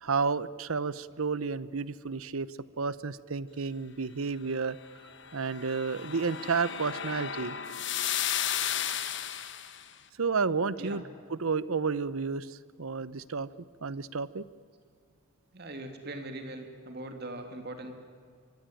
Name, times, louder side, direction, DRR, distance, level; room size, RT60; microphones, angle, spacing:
voice 1, 0.0-2.5 2.8-4.8 5.3-7.6 10.2-11.0 11.4-13.5 13.8-14.4, right 5 dB, 80° right, 17 dB, 0.8 m, -31 dB
sound 1, 5.2-9.8, left 10 dB, 55° left, 1.3 m, -34 dB
voice 2, 15.5-17.9, right 1 dB, 50° right, 6 dB, 3.0 m, -40 dB
24.0 x 23.5 x 9.1 m, 2.1 s
head